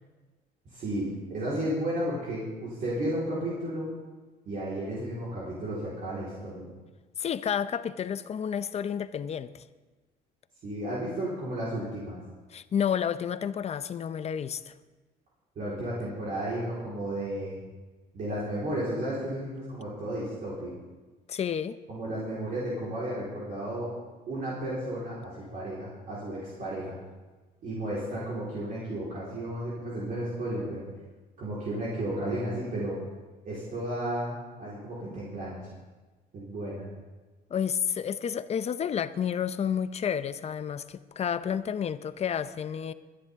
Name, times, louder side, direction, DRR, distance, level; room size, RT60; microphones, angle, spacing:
voice 1, 0.7-3.9 4.5-6.7 10.6-12.2 15.6-17.6 18.1-20.7 21.9-23.9 24.3-27.0 27.6-30.8 31.4-33.0 33.4-35.6 36.3-36.9, right 1 dB, 55° right, 4.2 m, -33 dB
voice 2, 7.2-9.6 12.5-14.7 21.3-21.8 37.5-42.9, left 8 dB, 40° left, 0.6 m, -30 dB
22.0 x 10.5 x 3.6 m
cardioid pair, 110°, 17 cm